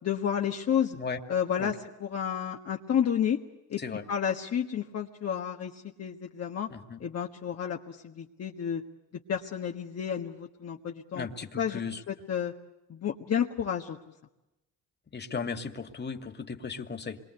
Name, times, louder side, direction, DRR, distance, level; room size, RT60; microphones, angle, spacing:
voice 1, 0.0-1.0 1.3-3.4 3.7-3.8 4.1-6.7 7.0-8.8 9.3-11.3 11.6-11.8 12.1-12.5 12.9-14.0, left 8 dB, 55° left, 1 dB, 1.7 m, -31 dB
voice 2, 11.1-12.0 15.1-17.2, left 5 dB, 35° left, 6 dB, 2.4 m, -36 dB
27.0 x 23.0 x 8.1 m, 0.95 s
cardioid pair, 90°, 30 cm